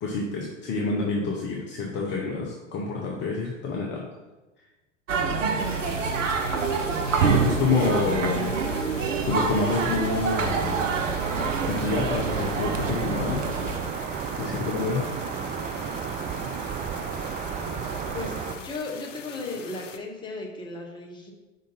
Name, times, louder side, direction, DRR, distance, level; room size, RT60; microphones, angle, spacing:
voice 1, 0.0-4.0 7.2-8.6 9.2-10.8 11.7-13.4 14.4-15.0, left 3 dB, 30° left, -2 dB, 0.9 m, -27 dB
sound 1, 5.1-13.8, right 5 dB, 70° right, 0.8 m, -26 dB
sound 2, 5.6-20.0, left 7 dB, 70° left, 0.7 m, -44 dB
sound 3, 10.3-18.5, right 6 dB, 20° right, 0.5 m, -32 dB
voice 2, 18.1-21.3, left 3 dB, 10° left, 0 dB, 1.2 m, -35 dB
5.2 x 3.9 x 5.4 m, 1.1 s
figure-of-eight pair, 90°, 39 cm